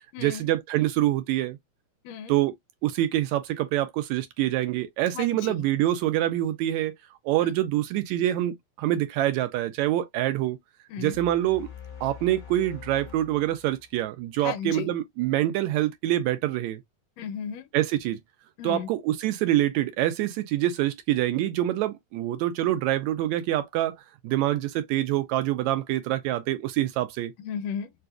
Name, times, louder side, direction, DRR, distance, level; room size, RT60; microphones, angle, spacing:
voice 1, 0.2-1.6 2.3-2.5 2.8-6.9 7.3-10.6 11.0-11.7 12.0-16.8 17.7-18.2 18.6-24.0 24.2-27.3, right 13 dB, 85° right, 1.9 m, -25 dB
voice 2, 5.1-5.6 7.4-7.5 10.9-11.2 14.4-14.9 17.2-17.6 18.6-18.9 27.4-27.9, left 8 dB, 75° left, 1.8 m, -34 dB
sound 1, 11.1-14.4, left 8 dB, 40° left, 1.4 m, -45 dB
4.7 x 2.5 x 2.3 m
omnidirectional pair, 3.3 m